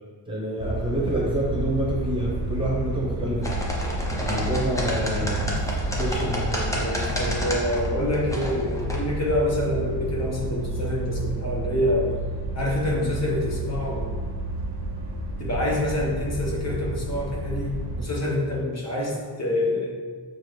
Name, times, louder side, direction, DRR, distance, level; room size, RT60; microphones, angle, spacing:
voice 1, 0.3-3.4 4.2-5.6 5.9-6.8, equal, 10° right, -6 dB, 0.8 m, -27 dB
sound 1, 0.6-18.0, right 2 dB, 70° right, 0.8 m, -30 dB
sound 2, 3.4-9.0, left 1 dB, 10° left, 0.5 m, -30 dB
voice 2, 6.7-12.1 12.5-14.1 15.4-20.0, left 1 dB, 40° left, -3 dB, 0.9 m, -26 dB
6.3 x 2.5 x 3.2 m, 1.5 s
wide cardioid pair, 170°, 42 cm